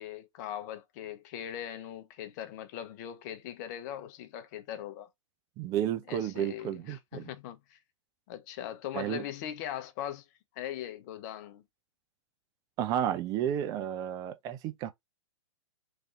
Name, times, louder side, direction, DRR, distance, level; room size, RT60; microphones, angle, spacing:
voice 1, 0.0-5.1 6.1-7.8 8.3-10.2 10.6-11.6, left 11 dB, 35° left, 0.6 m, -40 dB
voice 2, 5.6-7.3 8.9-9.2 12.8-14.9, right 10 dB, 25° right, 0.4 m, -32 dB
3.2 x 2.6 x 3.5 m
figure-of-eight pair, 110°, 16 cm